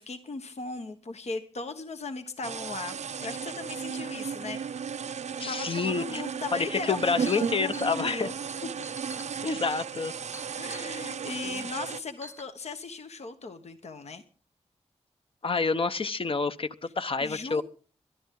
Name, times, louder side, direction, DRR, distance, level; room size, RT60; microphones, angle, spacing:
voice 1, 0.0-4.6 5.4-8.3 10.6-14.2 17.2-17.6, left 3 dB, 70° left, 7 dB, 1.2 m, -38 dB
sound 1, 2.4-12.0, right 7 dB, 80° right, 0.6 m, -35 dB
voice 2, 5.4-6.2 6.5-8.3 9.4-10.1 11.4-11.6 15.4-17.6, left 4 dB, 50° left, 12 dB, 0.9 m, -28 dB
Chink clink, 7.0-10.9 11.7-11.8 12.2-12.4, left 1 dB, 20° left, 1.2 m, -47 dB
24.5 x 11.5 x 3.8 m, 0.42 s
wide cardioid pair, 100°, 12 cm